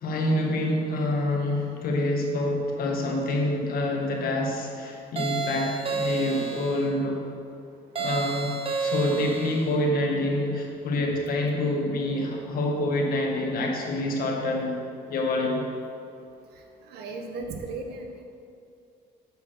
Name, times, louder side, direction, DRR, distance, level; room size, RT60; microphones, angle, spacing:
voice 1, 0.0-7.2 8.0-14.8 15.1-15.6, left 1 dB, 60° left, 1 dB, 1.7 m, -27 dB
sound 1, 5.2-6.9 8.0-9.7, right 4 dB, 35° right, 0.8 m, -30 dB
voice 2, 16.9-18.2, right 3 dB, 75° right, 4 dB, 1.2 m, -36 dB
7.4 x 7.0 x 6.3 m, 2.5 s
cardioid pair, 110°, 17 cm